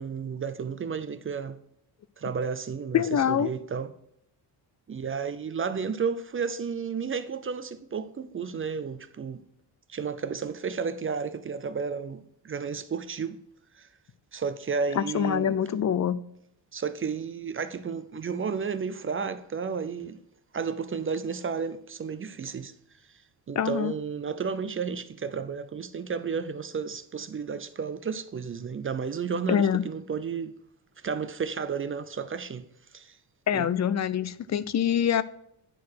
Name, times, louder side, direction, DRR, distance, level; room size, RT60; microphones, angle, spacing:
voice 1, 0.0-1.6 2.2-3.9 4.9-9.4 9.9-13.4 13.7-13.9 14.3-15.6 16.7-20.2 20.5-22.7 23.5-30.5 31.0-32.6 32.9-33.2 33.5-33.7, right 5 dB, 30° right, 0.5 m, -32 dB
voice 2, 2.9-3.5 15.0-16.2 23.6-23.9 29.5-29.8 33.5-35.2, left 9 dB, 40° left, 0.5 m, -25 dB
10.5 x 4.6 x 4.6 m
cardioid pair, 120°, 42 cm